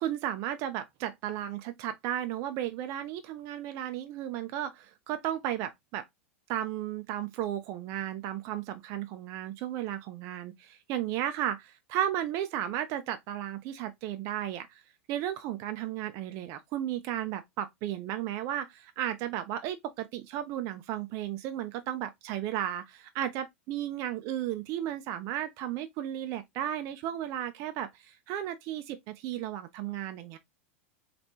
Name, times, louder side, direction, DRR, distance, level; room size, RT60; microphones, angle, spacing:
voice 1, 0.0-6.0 6.5-14.8 15.1-30.4, right 11 dB, 45° right, 0.4 m, -34 dB
3.4 x 2.4 x 2.6 m
hypercardioid pair, 95°, 7 cm